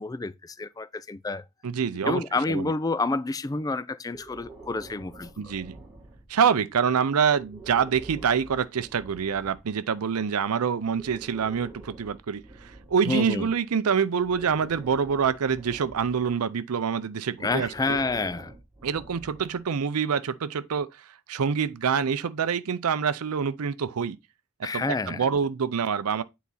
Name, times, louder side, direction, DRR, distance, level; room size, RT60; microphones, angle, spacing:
voice 1, 0.0-1.4 2.1-5.5 13.1-13.5 17.4-18.5 24.6-25.2, left 3 dB, 15° left, 0.3 m, -29 dB
voice 2, 1.6-2.7 5.4-5.8 6.3-18.0 18.8-24.2 24.6-26.2, right 6 dB, 85° right, 0.5 m, -26 dB
Breathing, 4.1-6.5 7.3-9.7 10.8-13.6 14.2-16.4 17.4-19.7, right 2 dB, 5° right, 1.8 m, -47 dB
8.5 x 4.1 x 4.0 m
head